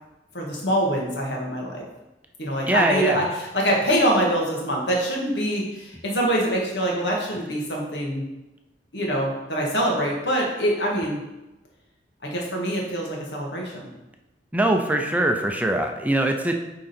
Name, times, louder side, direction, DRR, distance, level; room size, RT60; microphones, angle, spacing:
voice 1, 0.3-1.8 2.4-8.2 8.9-11.2 12.2-13.9, equal, 80° left, -2 dB, 1.9 m, -24 dB
voice 2, 2.7-3.3 14.5-16.5, right 1 dB, 10° right, 3 dB, 0.5 m, -22 dB
8.8 x 3.8 x 4.4 m, 1.0 s
head